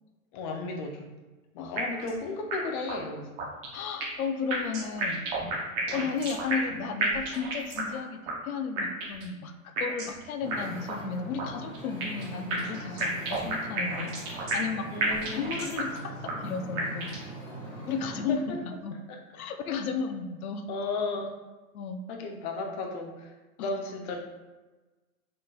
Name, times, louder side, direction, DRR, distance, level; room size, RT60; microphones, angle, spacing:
voice 1, 0.3-1.1 1.5-3.4 5.9-6.1 14.9-15.4 18.3-18.6 19.1-19.2 20.7-21.3 22.1-23.3 23.6-24.2, left 3 dB, 35° left, 2 dB, 0.6 m, -34 dB
sound 1, 1.8-2.2 2.5-2.6 2.9-3.0 3.4-4.2 4.5-6.7 7.0-8.0 8.3-8.4 8.8-9.3 9.8-10.2 10.5-10.6 10.9-11.0 11.4-12.2 12.5-14.7 15.0-16.0 16.3-16.4 16.8-17.3, right 3 dB, 15° right, 0.3 m, -31 dB
voice 2, 3.7-5.2 5.9-8.2 8.4-17.1 17.9-19.0 19.3-20.6 21.7-22.0 23.6-23.7, left 5 dB, 85° left, 7 dB, 0.5 m, -34 dB
Wind / Ocean, 10.4-18.3, right 1 dB, 10° left, 1.1 m, -42 dB
3.9 x 3.6 x 2.3 m, 1.2 s
hypercardioid pair, 130°, 42 cm